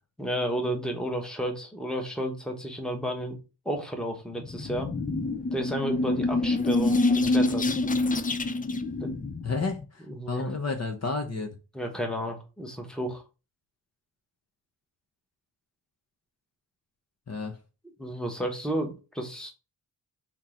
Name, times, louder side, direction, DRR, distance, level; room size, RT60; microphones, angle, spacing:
voice 1, 0.2-3.4 3.6-4.9 5.5-7.7 9.0-9.1 10.1-10.4 11.7-13.2 18.0-19.5, equal, ahead, 1.1 m, -32 dB
sound 1, 4.4-9.8, left 2 dB, 20° left, 0.3 m, -26 dB
voice 2, 9.4-11.5 17.3-17.6, left 3 dB, 40° left, 0.8 m, -31 dB
3.7 x 2.9 x 4.8 m
wide cardioid pair, 105°, 42 cm